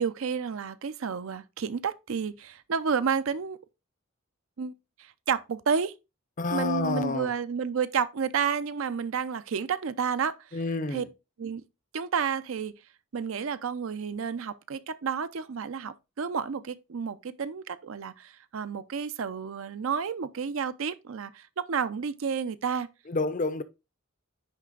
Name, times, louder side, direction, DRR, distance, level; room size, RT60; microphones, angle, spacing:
voice 1, 0.0-3.6 4.6-4.7 5.0-5.9 6.5-10.3 10.9-11.0 11.4-11.6 11.9-12.7 13.1-22.9, right 6 dB, 70° right, 0.5 m, -30 dB
voice 2, 6.4-7.3 10.5-11.1 23.1-23.6, left 3 dB, 35° left, 0.6 m, -29 dB
9.9 x 3.3 x 3.8 m
head